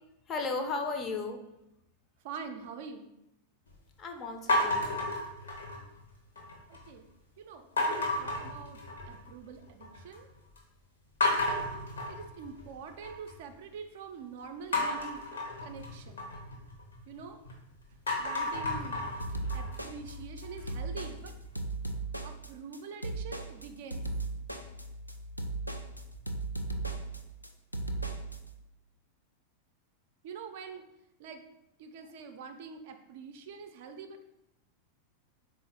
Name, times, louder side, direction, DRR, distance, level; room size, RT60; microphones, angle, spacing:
voice 1, 0.3-1.4 4.0-4.9, left 3 dB, 25° left, 5 dB, 0.5 m, -35 dB
voice 2, 2.2-3.1 6.7-7.1 7.4-8.8 9.1-10.3 11.2-11.6 12.1-15.3 15.6-16.2 17.1-17.4 18.2-19.1 19.5-21.3 22.2-24.1 30.2-30.8 31.2-31.4 31.8-34.2, right 5 dB, 50° right, 6 dB, 0.4 m, -45 dB
sound 1, 4.5-6.0 6.4-6.9 7.8-9.3 9.6-10.2 10.6-10.7 11.2-13.3 14.7-17.5 17.9-20.8, left 2 dB, 70° left, 0.9 m, -32 dB
sound 2, 19.2-28.4, right 2 dB, 90° left, 0.3 m, -37 dB
3.9 x 2.5 x 4.2 m, 0.86 s
figure-of-eight pair, 90°, 0 cm